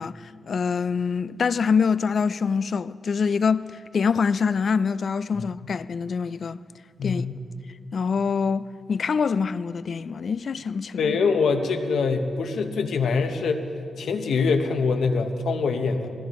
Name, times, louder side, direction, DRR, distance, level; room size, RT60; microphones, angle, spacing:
voice 1, 0.0-6.6 7.0-7.2 7.9-11.1, left 5 dB, 55° left, 0.3 m, -25 dB
voice 2, 7.0-7.3 11.0-13.6 14.0-16.1, left 4 dB, 85° left, 1.0 m, -24 dB
20.0 x 15.5 x 3.1 m
cardioid pair, 95°, 0 cm